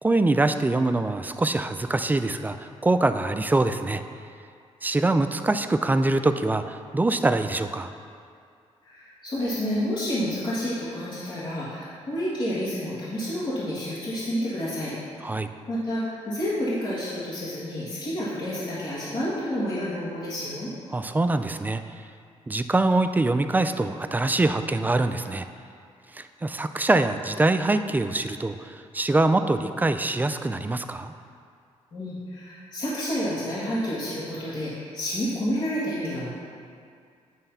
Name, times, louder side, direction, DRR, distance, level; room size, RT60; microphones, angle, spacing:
voice 1, 0.0-4.0 4.8-7.9 15.2-15.5 20.9-21.8 22.5-25.5 26.1-31.1, right 2 dB, 15° right, 9 dB, 0.3 m, -24 dB
voice 2, 8.8-14.9 15.7-20.7 31.9-36.3, equal, 45° left, -11 dB, 1.9 m, -29 dB
9.1 x 3.2 x 5.7 m, 2.3 s
cardioid pair, 85°, 12 cm